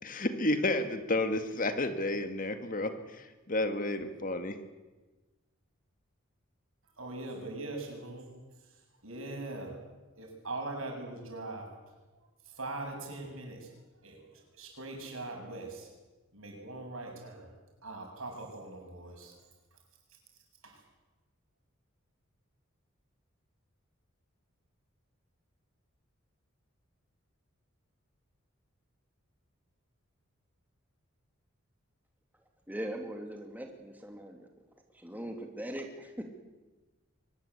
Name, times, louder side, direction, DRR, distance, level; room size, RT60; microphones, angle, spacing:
voice 1, 0.0-4.6, left 2 dB, 40° left, 8 dB, 1.9 m, -31 dB
voice 2, 7.0-8.3 9.0-9.7 10.2-11.7 12.5-13.7 14.0-15.9 16.3-17.5 17.8-19.3 20.6-20.8, right 2 dB, 85° right, 2 dB, 7.3 m, -41 dB
voice 3, 32.7-34.5 34.9-36.2, right 1 dB, 10° right, 3 dB, 2.6 m, -40 dB
23.5 x 20.5 x 8.3 m, 1.2 s
head